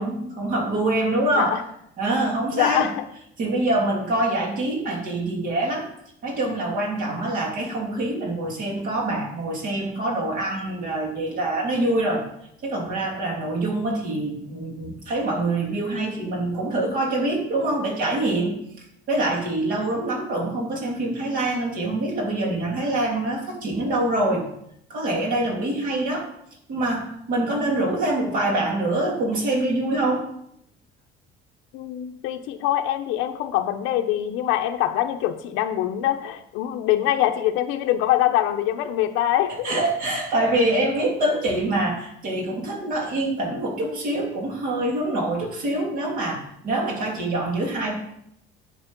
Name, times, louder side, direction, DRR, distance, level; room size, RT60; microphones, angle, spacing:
voice 1, 0.0-1.6 2.0-2.9 3.4-5.9 6.2-12.3 12.6-18.6 19.1-24.4 24.9-26.3 26.7-30.2 39.6-47.9, right 2 dB, 45° right, 1 dB, 2.6 m, -25 dB
voice 2, 2.5-3.0 31.7-39.8, left 12 dB, 85° left, 5 dB, 0.8 m, -24 dB
10.0 x 6.7 x 5.2 m, 0.75 s
cardioid pair, 175°, 20 cm